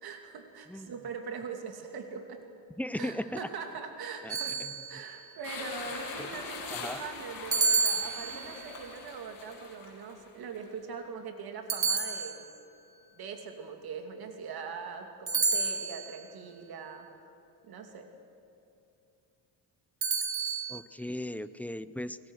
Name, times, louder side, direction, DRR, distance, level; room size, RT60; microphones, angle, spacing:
voice 1, 0.0-2.4 2.9-4.6 4.9-12.5 13.2-17.3 17.6-18.1, right 5 dB, 60° right, 4 dB, 2.7 m, -42 dB
voice 2, 2.8-3.5 4.2-4.7 6.2-6.3 6.7-7.0 20.7-22.2, left 1 dB, 5° left, 13 dB, 0.6 m, -37 dB
sound 1, 4.3-5.2 7.5-8.8 11.7-12.7 15.3-16.2 20.0-20.8, right 4 dB, 30° right, 1.7 m, -30 dB
sound 2, 5.4-10.7, left 4 dB, 55° left, 7.9 m, -42 dB
28.5 x 21.0 x 6.4 m, 2.7 s
cardioid pair, 125°, 42 cm